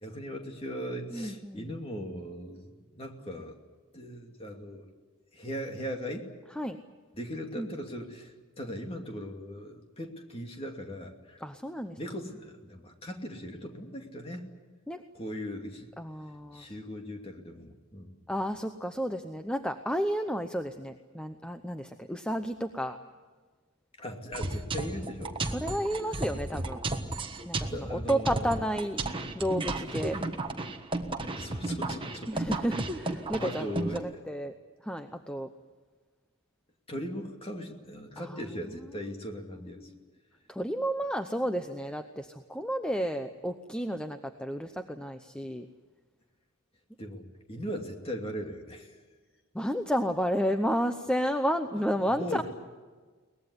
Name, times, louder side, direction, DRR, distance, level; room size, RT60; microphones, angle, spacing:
voice 1, 0.0-3.6 3.9-4.9 5.3-6.3 7.1-11.4 12.0-14.5 15.1-15.9 16.5-18.1 24.0-25.4 27.7-28.5 31.4-32.5 33.4-34.2 36.9-39.9 47.0-49.0 52.1-52.4, equal, 25° left, 3 dB, 2.6 m, -39 dB
voice 2, 1.1-1.7 6.6-6.8 7.6-7.7 11.4-12.0 14.9-15.0 16.0-16.7 18.3-23.0 25.5-26.8 27.5-29.0 29.3-30.2 32.3-34.5 34.8-35.5 38.2-38.7 39.8-40.0 40.5-45.7 49.5-52.4, equal, 5° left, 7 dB, 0.7 m, -32 dB
sound 1, 24.3-34.0, right 2 dB, 25° right, 1.4 m, -34 dB
23.0 x 19.5 x 9.7 m, 1.4 s
head